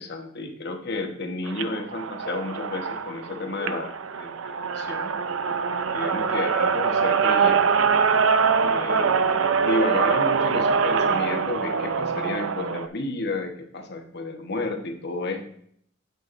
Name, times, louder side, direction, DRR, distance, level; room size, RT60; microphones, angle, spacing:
voice 1, 0.0-5.1 5.9-7.9 8.6-9.1 9.6-15.4, left 2 dB, 55° left, 4 dB, 1.2 m, -31 dB
sound 1, 1.5-12.9, right 6 dB, 75° right, 0.6 m, -23 dB
9.4 x 7.9 x 2.6 m, 0.64 s
head